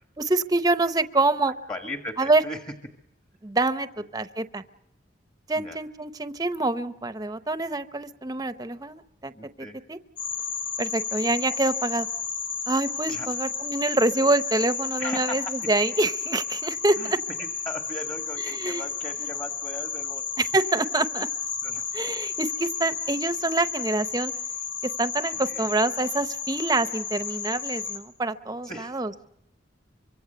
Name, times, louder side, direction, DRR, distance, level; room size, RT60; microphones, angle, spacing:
voice 1, 0.2-1.5 2.2-2.4 3.4-4.6 5.5-9.3 9.9-10.0 10.8-12.1 12.7-17.2 18.4-18.8 19.2-19.3 20.4-21.3 21.9-24.3 25.0-29.1, right 2 dB, 20° right, 11 dB, 0.8 m, -26 dB
voice 2, 1.7-2.6 5.6-5.8 9.3-9.8 13.1-13.3 15.0-15.6 17.0-17.1 17.4-20.2 21.6-22.1 25.3-25.8 28.6-29.0, left 1 dB, 25° left, 6 dB, 1.6 m, -38 dB
sound 1, 10.2-28.0, left 6 dB, 90° left, 2.8 m, -32 dB
25.0 x 23.5 x 6.8 m, 0.79 s
head